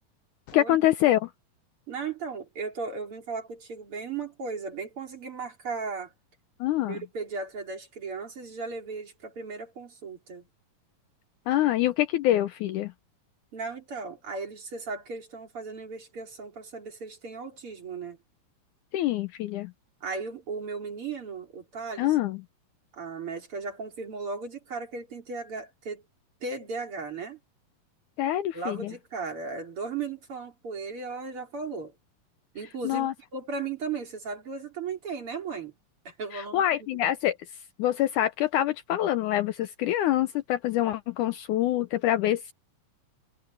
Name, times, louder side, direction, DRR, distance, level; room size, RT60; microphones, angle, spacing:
voice 1, 0.5-1.3 6.6-7.0 11.5-12.9 18.9-19.7 22.0-22.4 28.2-28.9 32.8-33.1 36.3-37.4 37.8-42.5, left 13 dB, 75° left, 2.0 m, -25 dB
voice 2, 1.9-6.1 6.9-10.5 13.5-18.2 20.0-22.2 22.9-26.0 26.4-27.4 28.5-31.9 32.5-35.7 36.0-37.1, right 4 dB, 40° right, 4.0 m, -36 dB
omnidirectional pair, 4.0 m